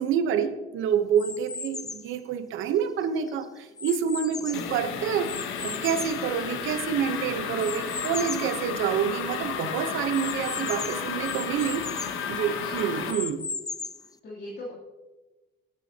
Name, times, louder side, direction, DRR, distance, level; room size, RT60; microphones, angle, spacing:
voice 1, 0.0-11.9 12.3-13.4, right 8 dB, 90° right, 10 dB, 1.0 m, -28 dB
sound 1, 1.2-2.1 2.8-4.8 5.2-6.9 7.6-8.5 9.0-9.1 9.3-9.4 10.1-12.2 12.8-14.1, left 4 dB, 20° left, 0.5 m, -37 dB
voice 2, 4.3-4.8 12.3-13.1 14.0-14.7, left 1 dB, 60° left, -7 dB, 3.1 m, -42 dB
sound 2, 4.5-13.1, left 7 dB, 90° left, 1.1 m, -33 dB
16.5 x 9.8 x 2.9 m, 1.2 s
cardioid pair, 90°, 20 cm